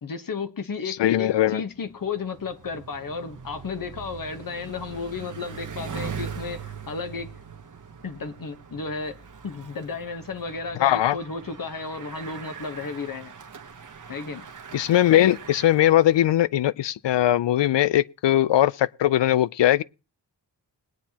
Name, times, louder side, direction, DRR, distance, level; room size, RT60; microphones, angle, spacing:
voice 1, 0.0-7.3 8.0-9.2 9.4-13.3 14.1-14.5, left 4 dB, 50° left, 1.1 m, -33 dB
voice 2, 0.9-1.6 10.8-11.2 14.7-19.8, left 12 dB, 80° left, 0.5 m, -20 dB
Bicycle, 1.7-16.4, right 6 dB, 45° right, 1.0 m, -41 dB
21.0 x 9.2 x 2.9 m
wide cardioid pair, 175°, 42 cm